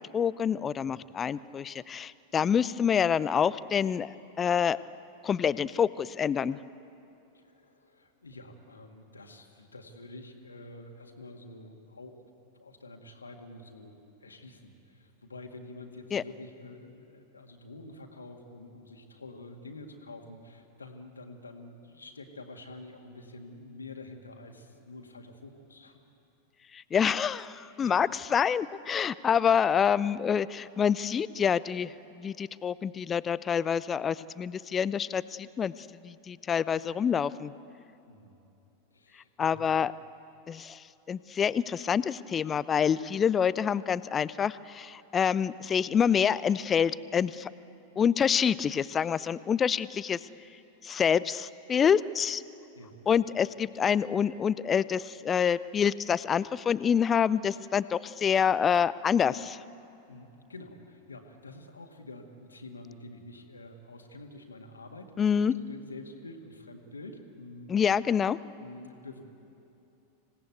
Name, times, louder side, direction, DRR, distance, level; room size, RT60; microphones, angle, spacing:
voice 1, 0.1-4.8 5.2-6.6 16.1-16.2 26.7-37.5 39.4-39.9 40.5-47.5 48.0-50.3 50.8-52.4 53.1-59.6 65.2-65.5 67.7-68.4, left 7 dB, 20° left, 18 dB, 0.5 m, -27 dB
voice 2, 7.3-12.2 12.5-26.0 27.8-28.0 38.1-38.4 38.9-39.6 52.8-53.0 60.1-67.7 68.6-69.2, left 2 dB, 75° left, 3 dB, 2.0 m, -47 dB
26.5 x 18.0 x 8.2 m, 2.9 s
figure-of-eight pair, 90°, 0 cm